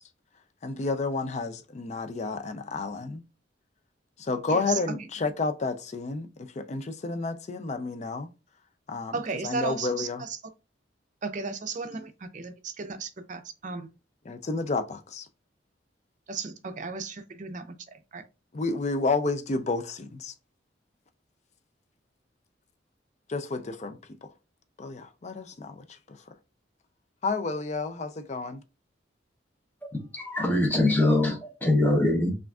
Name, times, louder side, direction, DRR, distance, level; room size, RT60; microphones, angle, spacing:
voice 1, 0.6-3.2 4.2-8.3 8.9-9.2 9.4-10.2 14.3-15.3 18.5-20.3 23.3-24.0 24.8-26.2 27.2-28.6, left 3 dB, 40° left, 0.4 m, -30 dB
voice 2, 4.5-5.1 9.1-10.4 11.2-13.9 16.3-18.2, right 4 dB, 45° right, 0.5 m, -35 dB
voice 3, 29.8-32.3, left 2 dB, 10° left, 0.8 m, -23 dB
5.8 x 2.5 x 2.3 m
head